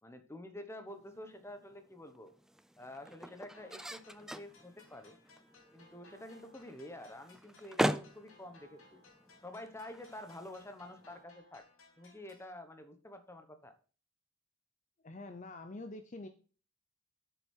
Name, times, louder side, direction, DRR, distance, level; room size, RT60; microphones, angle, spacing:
voice 1, 0.0-2.3 2.8-5.2 5.7-9.0 9.4-11.6 12.0-13.7, left 1 dB, 15° left, 7 dB, 1.2 m, -49 dB
sound 1, 0.9-11.2, equal, 5° right, 0.3 m, -42 dB
sound 2, 3.5-12.5, left 2 dB, 85° left, 2.9 m, -63 dB
voice 2, 15.0-16.3, left 2 dB, 35° left, 8 dB, 0.7 m, -45 dB
8.1 x 6.8 x 4.5 m, 0.38 s
head